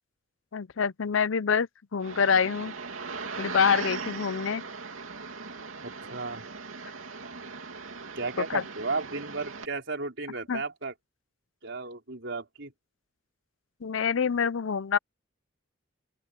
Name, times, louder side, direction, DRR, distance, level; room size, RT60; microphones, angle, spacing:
voice 1, 0.5-2.7 3.4-4.6 8.5-8.6 10.5-10.6 13.8-15.0, left 6 dB, 70° left, 0.6 m, -26 dB
sound 1, 2.0-9.7, right 4 dB, 90° right, 2.8 m, -39 dB
voice 2, 5.8-6.4 8.2-10.9 11.6-12.7, right 3 dB, 60° right, 4.8 m, -34 dB
open air
head